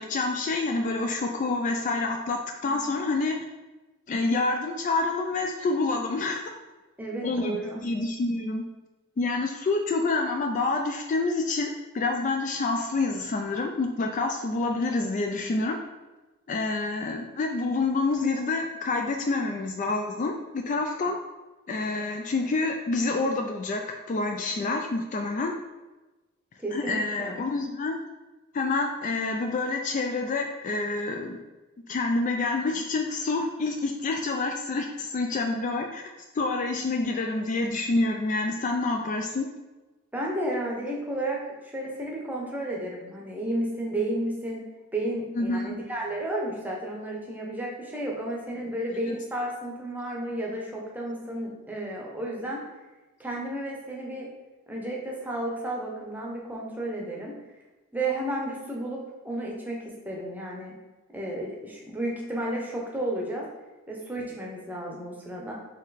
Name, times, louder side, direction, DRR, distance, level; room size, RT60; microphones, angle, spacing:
voice 1, 0.0-3.4 4.1-6.4 7.2-8.6 9.2-15.8 16.5-21.2 21.7-25.5 26.7-28.0 28.5-31.4 31.9-36.1 36.3-39.5 45.3-45.8 49.1-49.2, left 3 dB, 40° left, 3 dB, 0.3 m, -27 dB
voice 2, 7.0-7.8 26.6-27.4 40.1-44.7 44.9-52.6 53.2-54.3 54.7-57.3 57.9-59.0 59.2-60.7 61.1-63.5 63.9-65.5, right 1 dB, 10° right, -2 dB, 0.7 m, -32 dB
4.2 x 3.0 x 4.0 m, 1.1 s
head